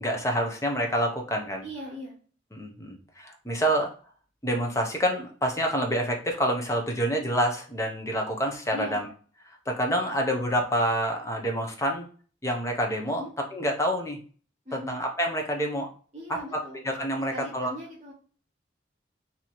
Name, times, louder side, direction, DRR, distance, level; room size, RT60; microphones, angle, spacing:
voice 1, 0.0-1.6 2.5-3.9 4.4-9.1 9.5-12.1 12.4-13.2 13.5-14.2 14.7-15.9 16.5-16.6 16.8-17.7, equal, 15° left, 2 dB, 0.6 m, -27 dB
voice 2, 1.6-2.2 8.7-9.0 13.2-13.3 14.6-14.9 16.1-16.9 17.1-18.1, equal, 40° right, -2 dB, 0.9 m, -40 dB
3.0 x 2.8 x 4.0 m, 0.41 s
head